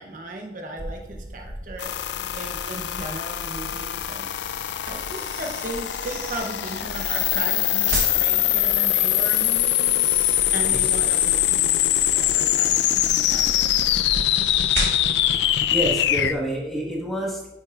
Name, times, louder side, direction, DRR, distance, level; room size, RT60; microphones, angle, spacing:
voice 1, 0.0-4.3 4.8-10.1 10.5-13.9, right 2 dB, 45° right, 2 dB, 0.7 m, -36 dB
sound 1, 0.8-16.3, equal, 50° left, 1.4 m, -40 dB
sound 2, 1.8-16.3, left 12 dB, 80° left, 0.4 m, -23 dB
sound 3, 4.2-15.4, right 2 dB, 85° right, 1.5 m, -37 dB
voice 2, 15.7-17.5, right 1 dB, ahead, -4 dB, 1.3 m, -27 dB
9.1 x 6.5 x 2.4 m, 0.96 s
head